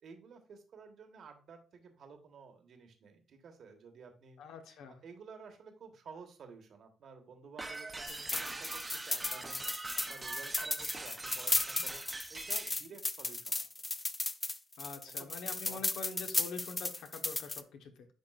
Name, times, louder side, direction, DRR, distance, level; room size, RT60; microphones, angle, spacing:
voice 1, 0.0-4.4 4.8-12.0 12.3-13.7 15.0-15.3 15.6-15.8, right 5 dB, 60° right, 5 dB, 1.3 m, -53 dB
voice 2, 4.4-5.0 14.8-18.1, left 4 dB, 85° left, 5 dB, 1.1 m, -45 dB
sound 1, 7.6-12.8, right 2 dB, 20° right, 0.7 m, -43 dB
sound 2, 8.1-17.6, left 3 dB, 20° left, 0.4 m, -35 dB
10.5 x 3.6 x 2.5 m, 0.37 s
cardioid pair, 90°, 0 cm